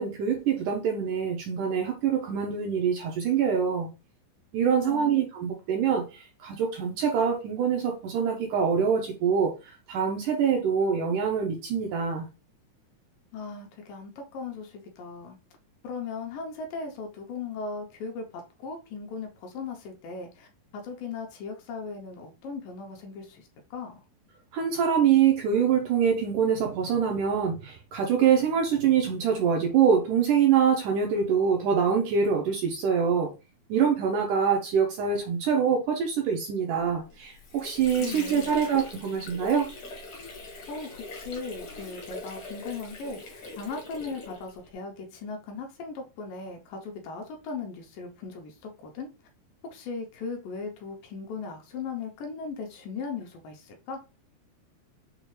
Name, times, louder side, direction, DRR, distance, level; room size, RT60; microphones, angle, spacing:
voice 1, 0.0-3.9 4.5-12.3 24.5-33.3 33.7-39.7, right 7 dB, 75° right, 1.9 m, -25 dB
voice 2, 4.7-5.2 13.3-15.4 15.8-20.5 20.7-24.0 38.0-38.6 40.7-49.1 49.7-54.0, left 4 dB, 75° left, 2.3 m, -38 dB
Water / Sink (filling or washing), 37.1-44.7, left 2 dB, 60° left, 1.4 m, -42 dB
6.5 x 2.4 x 3.1 m
omnidirectional pair, 4.3 m